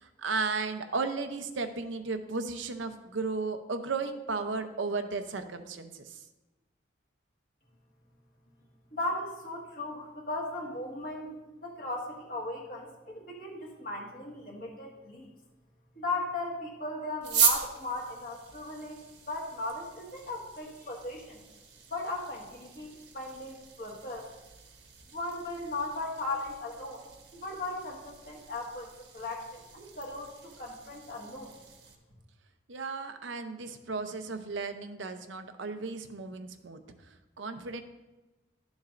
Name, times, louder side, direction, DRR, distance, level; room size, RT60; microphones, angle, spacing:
voice 1, 0.0-6.2 32.7-36.8 37.4-37.8, right 4 dB, 80° right, 7 dB, 0.7 m, -34 dB
voice 2, 8.9-11.4 11.6-15.3 16.0-21.4 21.9-24.2 25.1-27.0 27.3-28.9 29.1-31.6, left 2 dB, 50° left, -2 dB, 1.8 m, -37 dB
sound 1, 17.2-32.0, right 7 dB, 65° right, 1.1 m, -37 dB
12.5 x 7.2 x 2.5 m, 1.1 s
head